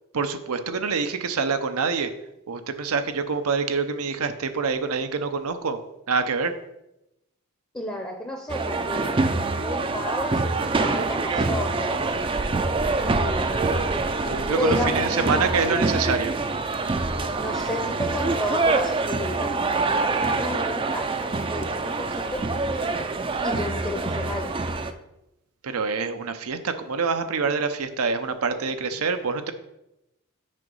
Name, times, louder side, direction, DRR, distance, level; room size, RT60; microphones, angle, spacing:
voice 1, 0.1-2.1 2.5-5.8 6.1-6.5 14.3-16.3 25.6-29.5, right 5 dB, 90° right, 8 dB, 0.7 m, -26 dB
voice 2, 7.7-12.1 13.0-13.7 14.3-15.8 17.4-22.5 23.4-24.6, left 1 dB, 10° left, 3 dB, 0.7 m, -32 dB
sound 1, 8.5-24.9, right 3 dB, 25° right, 0.4 m, -25 dB
6.5 x 4.9 x 5.4 m, 0.89 s
head